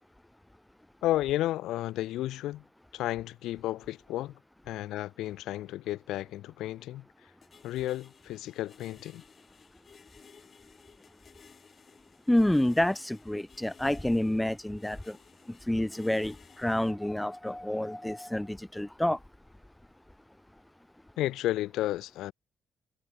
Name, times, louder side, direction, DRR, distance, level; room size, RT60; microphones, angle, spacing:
voice 1, 1.0-2.6 2.9-4.4 4.6-7.0 7.6-9.2 21.2-22.3, left 15 dB, 90° left, 1.2 m, -32 dB
sound 1, 7.4-16.9, left 6 dB, 45° left, 5.3 m, -57 dB
voice 2, 12.3-15.2 15.7-19.2, left 1 dB, 5° left, 0.3 m, -28 dB
cardioid pair, 90°, 0 cm